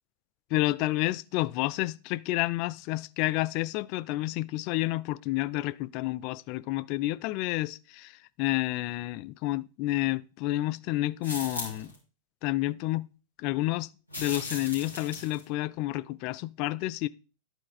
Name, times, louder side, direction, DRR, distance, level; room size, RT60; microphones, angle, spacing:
voice 1, 0.5-11.9 12.4-13.1 13.4-13.9 14.2-17.1, left 18 dB, 45° left, 0.3 m, -30 dB
sound 1, 11.2-11.9 14.1-15.4, left 2 dB, 90° right, 2.7 m, -38 dB
11.0 x 4.5 x 3.9 m
figure-of-eight pair, 90°, 0 cm